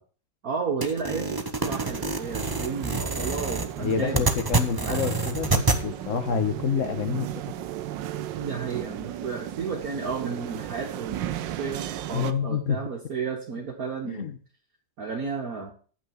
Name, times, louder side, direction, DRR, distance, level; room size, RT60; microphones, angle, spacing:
voice 1, 0.4-4.3 4.8-5.0 8.4-14.3 15.0-15.7, right 5 dB, 55° right, 0 dB, 1.8 m, -32 dB
sound 1, 0.8-5.8, right 3 dB, 25° right, 0.4 m, -27 dB
sound 2, 1.6-12.3, right 12 dB, 90° right, 1.4 m, -35 dB
voice 2, 3.8-7.3 12.1-12.8 14.0-14.4, left 7 dB, 50° left, 10 dB, 1.3 m, -28 dB
10.0 x 6.1 x 7.1 m, 0.41 s
omnidirectional pair, 2.0 m